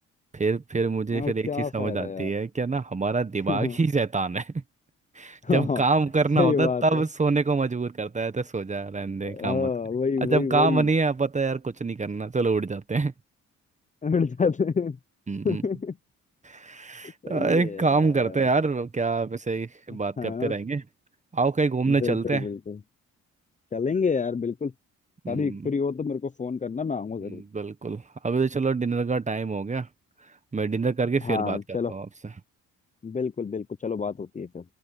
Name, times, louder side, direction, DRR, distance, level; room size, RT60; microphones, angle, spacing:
voice 1, 0.3-4.5 5.1-9.7 10.2-13.1 15.3-15.6 16.4-20.8 21.3-22.5 25.2-25.7 27.2-29.9 30.5-32.1, right 4 dB, 25° right, 1.4 m, -26 dB
voice 2, 1.1-2.3 3.5-3.8 5.4-5.8 6.4-7.0 9.2-10.9 14.0-15.0 15.4-16.0 17.2-18.4 20.2-20.5 21.9-22.8 23.7-24.7 25.3-27.4 31.2-31.9 33.0-34.6, left 5 dB, 25° left, 0.8 m, -28 dB
cardioid pair, 90°, 30 cm